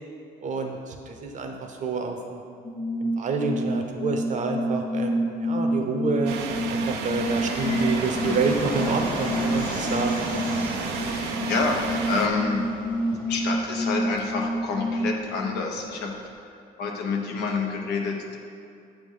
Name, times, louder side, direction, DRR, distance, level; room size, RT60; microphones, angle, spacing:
voice 1, 0.4-2.4 3.0-6.4 6.7-10.5, right 4 dB, 45° right, 4 dB, 0.8 m, -28 dB
sound 1, 2.6-15.2, equal, 20° left, 0.6 m, -28 dB
sound 2, 6.3-12.3, right 5 dB, 90° right, 0.6 m, -32 dB
Fixed-wing aircraft airplane, 7.2-16.3, left 2 dB, 55° left, 1.2 m, -37 dB
voice 2, 11.0-12.6 13.3-16.1 16.4-18.4, left 4 dB, 80° left, 1 dB, 1.0 m, -28 dB
7.2 x 3.5 x 5.5 m, 2.5 s
cardioid pair, 110°, 17 cm